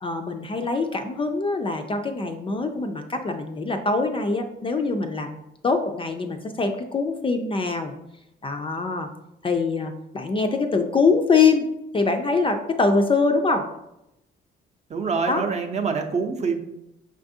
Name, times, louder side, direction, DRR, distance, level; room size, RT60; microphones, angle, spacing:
voice 1, 0.0-5.4 5.6-7.9 8.4-9.1 9.4-11.7 11.9-13.6 15.3-15.4, left 4 dB, 25° left, 5 dB, 0.3 m, -23 dB
voice 2, 14.9-16.6, right 5 dB, 35° right, 4 dB, 0.6 m, -25 dB
5.3 x 2.4 x 2.6 m, 0.87 s
cardioid pair, 90°, 20 cm